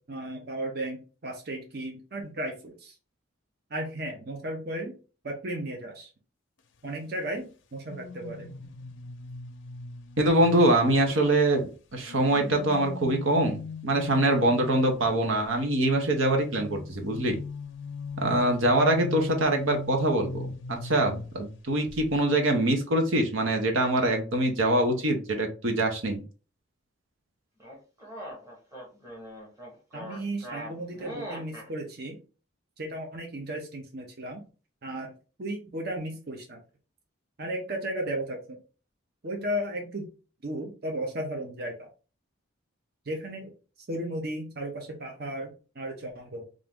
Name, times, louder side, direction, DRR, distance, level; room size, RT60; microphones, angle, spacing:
voice 1, 0.1-3.0 3.7-5.0 5.2-6.1 6.8-8.5 29.9-32.2 32.8-34.4 34.8-35.1 35.4-36.6 37.4-38.6 39.2-40.1 40.4-41.9 43.1-43.5 43.9-46.4, right 1 dB, 50° right, 2 dB, 0.7 m, -35 dB
sound 1, 7.9-11.5 12.1-15.3 16.4-21.6 21.9-22.2, left 4 dB, 65° left, 0.5 m, -40 dB
voice 2, 10.2-17.4 18.2-26.2, right 1 dB, 75° right, 3 dB, 0.9 m, -24 dB
sound 2, 27.6-31.7, equal, 15° right, 1.1 m, -41 dB
3.6 x 2.6 x 3.6 m, 0.35 s
head